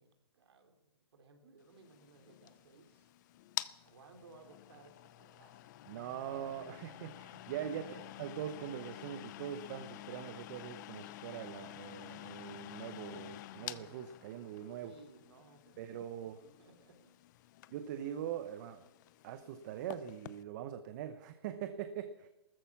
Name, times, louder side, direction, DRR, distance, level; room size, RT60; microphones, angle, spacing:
voice 1, 0.0-3.1 3.8-5.7 7.6-8.1 14.8-15.8 16.6-17.1, right 3 dB, 75° right, 6 dB, 3.0 m, -59 dB
sound 1, 1.7-20.4, left 15 dB, 45° left, 0.7 m, -49 dB
voice 2, 5.9-14.9 15.8-16.4 17.7-18.8 19.2-22.3, right 10 dB, 45° right, 10 dB, 1.0 m, -42 dB
14.5 x 14.0 x 6.0 m, 0.94 s
hypercardioid pair, 140°, 14 cm